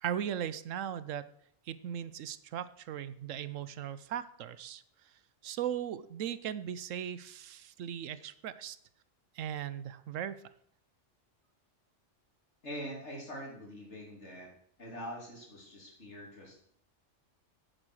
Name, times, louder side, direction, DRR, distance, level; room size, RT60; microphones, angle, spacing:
voice 1, 0.0-1.2 1.7-4.8 5.4-8.8 9.4-10.4, right 9 dB, 80° right, 15 dB, 1.0 m, -38 dB
voice 2, 12.6-14.5 14.8-16.7, equal, 60° left, -1 dB, 3.6 m, -44 dB
9.0 x 8.5 x 6.4 m, 0.67 s
omnidirectional pair, 1.3 m